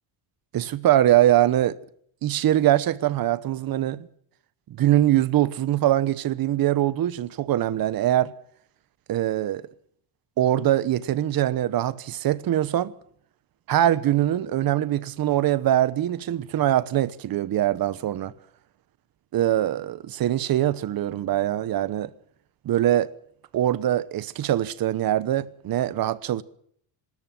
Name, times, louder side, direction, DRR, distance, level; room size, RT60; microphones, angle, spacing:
voice 1, 0.5-1.8 2.2-4.1 4.7-8.3 9.1-9.6 10.4-12.9 13.7-18.3 19.3-22.1 22.6-23.1 23.5-26.4, right 12 dB, 45° right, 1.1 m, -23 dB
24.5 x 13.5 x 9.0 m
cardioid pair, 155°, 49 cm